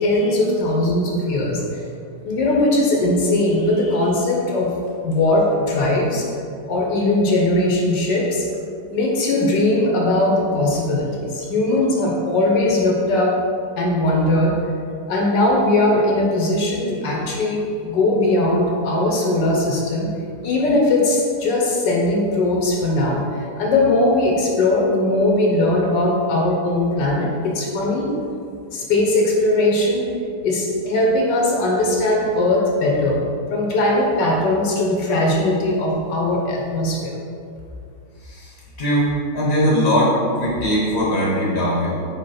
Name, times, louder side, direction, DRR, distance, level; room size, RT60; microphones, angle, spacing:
voice 1, 0.0-1.8 2.2-4.7 5.0-6.3 6.7-8.5 8.9-13.3 13.8-14.5 15.1-20.1 20.4-28.1 28.7-30.0 30.4-33.2 33.5-37.2, left 2 dB, 70° left, -2 dB, 1.5 m, -19 dB
voice 2, 38.8-41.9, equal, 40° left, -5 dB, 1.1 m, -20 dB
5.2 x 3.8 x 5.6 m, 2.4 s
omnidirectional pair, 2.0 m